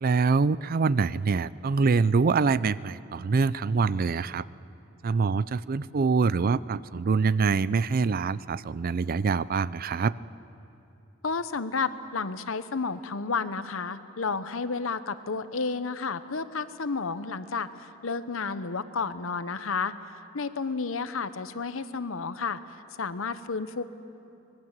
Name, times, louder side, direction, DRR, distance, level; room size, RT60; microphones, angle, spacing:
voice 1, 0.0-4.5 5.0-10.1, right 4 dB, 45° right, 18 dB, 0.4 m, -25 dB
voice 2, 11.2-19.9 20.3-22.6 23.0-23.8, left 4 dB, 70° left, 13 dB, 0.9 m, -31 dB
24.5 x 20.5 x 7.5 m, 2.8 s
head